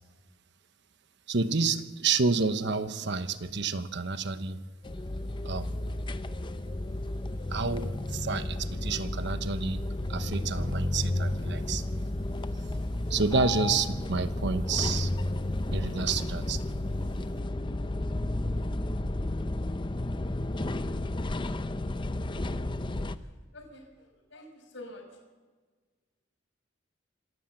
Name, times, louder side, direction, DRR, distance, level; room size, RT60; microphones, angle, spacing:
voice 1, 1.3-4.6 5.4-5.7 7.5-9.8 10.1-11.8 13.1-15.1 15.7-16.6, right 4 dB, 60° right, 10 dB, 1.1 m, -29 dB
sound 1, 4.8-23.2, left 1 dB, 25° left, 0.6 m, -32 dB
voice 2, 23.1-25.0, left 1 dB, 70° left, 3 dB, 5.7 m, -48 dB
26.5 x 13.5 x 7.8 m, 1.3 s
head